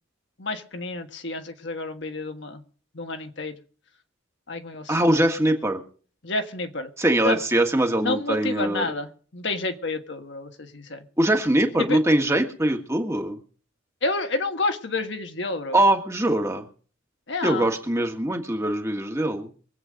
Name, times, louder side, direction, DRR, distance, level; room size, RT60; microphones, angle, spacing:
voice 1, 0.4-2.6 2.9-3.5 4.5-5.0 6.2-6.9 7.2-7.4 8.0-11.0 11.8-12.0 14.0-15.8 17.3-17.7, left 2 dB, 60° left, 6 dB, 1.5 m, -29 dB
voice 2, 4.9-5.8 7.0-8.9 11.2-13.4 15.7-16.7 17.4-19.5, right 1 dB, 15° right, 4 dB, 1.7 m, -22 dB
23.5 x 8.4 x 5.2 m, 0.43 s
head